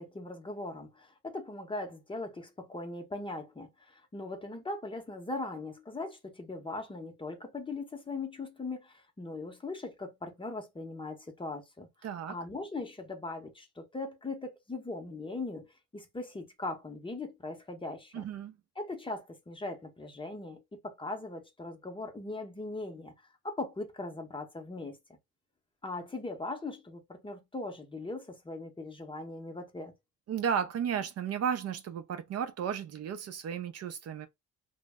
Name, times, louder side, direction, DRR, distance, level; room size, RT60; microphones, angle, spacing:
voice 1, 0.0-11.9 12.3-15.7 15.9-18.2 18.8-23.1 23.4-25.0 25.8-29.9, left 2 dB, 15° left, 0.6 m, -40 dB
voice 2, 12.0-12.4 18.1-18.5 30.3-34.3, right 8 dB, 55° right, 0.5 m, -34 dB
2.0 x 2.0 x 3.4 m
cardioid pair, 90°, 30 cm